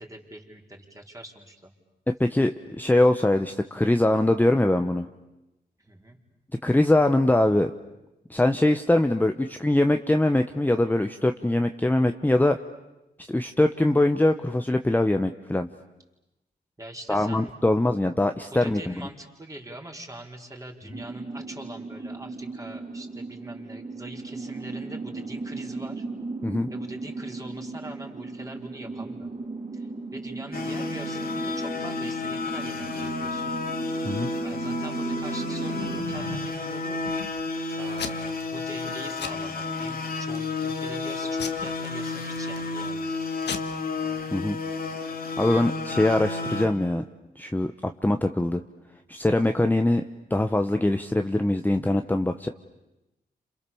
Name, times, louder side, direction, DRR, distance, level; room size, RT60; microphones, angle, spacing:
voice 1, 0.0-1.7 5.8-6.2 16.8-17.6 18.5-26.1 26.7-29.3 29.7-33.6 34.4-37.0 37.8-43.1, right 1 dB, 20° right, 1 dB, 4.5 m, -43 dB
voice 2, 2.2-5.1 6.6-7.7 8.3-12.6 13.3-15.7 17.1-19.1 26.4-26.7 34.0-34.3 44.3-44.6 45.4-47.0 47.4-48.6 49.1-50.0 50.3-52.5, left 1 dB, 10° left, 6 dB, 1.0 m, -22 dB
sound 1, 20.9-36.0, right 3 dB, 40° right, 4.4 m, -36 dB
sound 2, 30.5-46.7, left 3 dB, 60° left, 2.6 m, -31 dB
Packing tape duct tape / Tearing, 35.2-36.6 37.1-37.6 38.0-38.4 38.7-38.9 39.2-39.9 40.4-40.7 41.4-42.7 43.1-43.2 43.4-43.6, left 7 dB, 85° left, 1.6 m, -36 dB
30.0 x 27.5 x 7.1 m, 0.95 s
cardioid pair, 70°, 17 cm